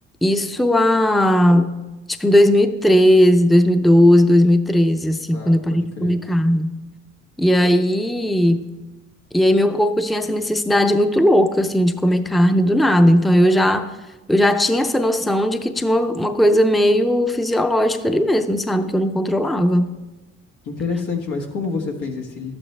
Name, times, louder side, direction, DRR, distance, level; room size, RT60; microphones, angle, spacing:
voice 1, 0.2-1.7 2.2-6.8 7.4-8.7 9.3-13.9 14.3-19.9, equal, ahead, 9 dB, 0.5 m, -17 dB
voice 2, 5.3-6.2 20.6-22.5, left 4 dB, 90° left, 2 dB, 1.4 m, -28 dB
12.0 x 8.6 x 3.3 m, 1.1 s
cardioid pair, 90°, 30 cm